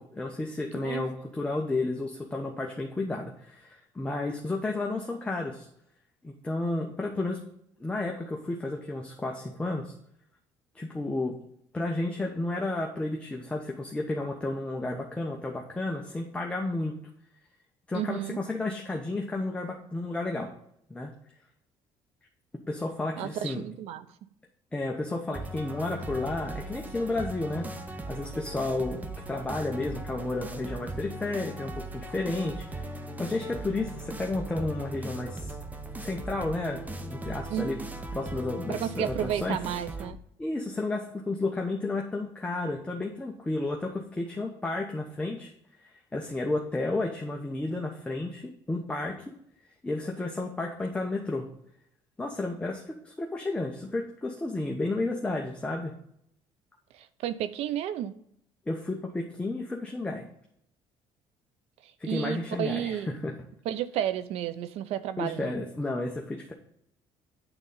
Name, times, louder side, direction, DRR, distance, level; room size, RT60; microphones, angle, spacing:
voice 1, 0.0-5.7 6.2-7.4 7.8-9.9 10.7-11.4 11.7-17.0 17.9-20.5 20.9-21.1 22.7-23.6 24.7-32.8 33.2-35.5 36.0-37.8 38.1-39.6 40.4-45.5 46.1-49.2 49.8-51.5 52.2-55.9 58.7-60.3 62.0-63.3 65.2-66.5, left 2 dB, 10° left, 1 dB, 0.9 m, -32 dB
voice 2, 0.7-1.1 17.9-18.4 23.2-24.1 37.5-37.7 38.7-40.2 56.9-58.1 61.8-63.2 63.6-65.6, right 10 dB, 75° right, 14 dB, 0.6 m, -32 dB
sound 1, 25.3-40.1, right 2 dB, 15° right, 0.8 m, -39 dB
8.9 x 3.9 x 5.4 m, 0.73 s
cardioid pair, 120°, 11 cm